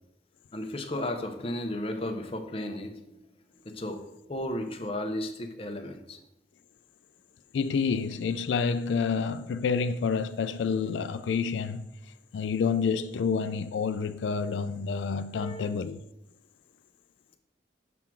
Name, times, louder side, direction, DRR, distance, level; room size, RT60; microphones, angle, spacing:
voice 1, 0.5-3.0 3.6-6.2 15.3-15.7, left 1 dB, 30° left, 0.6 m, -34 dB
voice 2, 7.5-11.9 12.3-16.0, left 5 dB, 90° left, 0.3 m, -28 dB
5.8 x 3.7 x 6.0 m
head